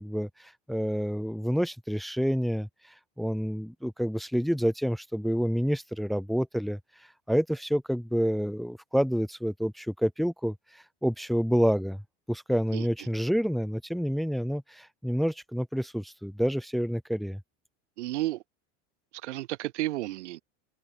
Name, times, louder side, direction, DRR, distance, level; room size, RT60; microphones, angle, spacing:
voice 1, 0.0-12.0 12.3-17.4, equal, ahead, 2.0 m, -28 dB
voice 2, 18.0-18.4 19.1-20.4, right 16 dB, 85° right, 4.8 m, -32 dB
supercardioid pair, 180°, 34 cm